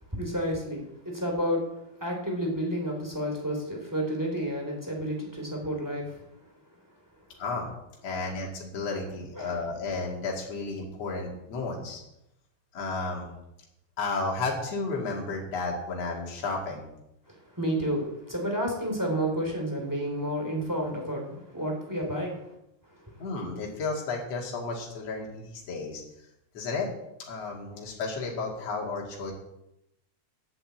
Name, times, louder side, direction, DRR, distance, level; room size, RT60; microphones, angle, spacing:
voice 1, 0.2-1.6 2.0-6.1 9.3-9.6 17.6-22.4, equal, 5° right, 0 dB, 2.7 m, -30 dB
voice 2, 8.0-12.0 12.7-13.3 14.0-16.9 23.2-26.0 26.5-26.9 27.3-29.3, left 3 dB, 60° left, -2 dB, 3.2 m, -32 dB
10.0 x 7.9 x 7.9 m, 0.84 s
omnidirectional pair, 3.3 m